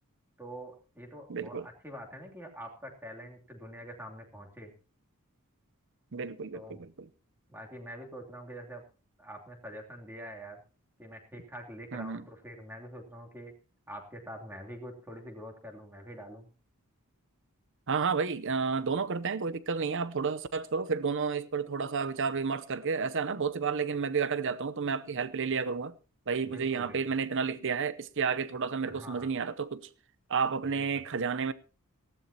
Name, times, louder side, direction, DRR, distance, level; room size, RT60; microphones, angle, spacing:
voice 1, 0.4-4.7 6.5-6.8 7.5-8.8 9.2-10.6 11.0-13.5 13.9-16.5 26.4-27.0 28.9-29.3 30.7-30.9, equal, 10° right, 2.9 m, -45 dB
voice 2, 1.3-1.7 6.1-6.9 11.9-12.2 17.9-25.9 26.3-29.9 30.3-31.5, right 5 dB, 60° right, 0.7 m, -31 dB
19.0 x 15.5 x 2.9 m
head